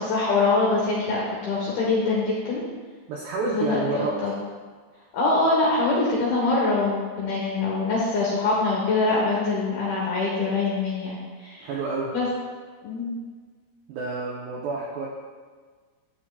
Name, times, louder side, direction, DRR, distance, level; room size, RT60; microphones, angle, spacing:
voice 1, 0.0-2.6 3.5-4.3 5.1-11.7 12.1-12.3 12.8-13.2, left 3 dB, 70° left, -5 dB, 2.3 m, -24 dB
voice 2, 3.1-4.3 11.6-12.2 13.9-15.1, right 3 dB, 80° right, -4 dB, 2.4 m, -29 dB
12.0 x 8.6 x 2.4 m, 1.5 s
omnidirectional pair, 5.9 m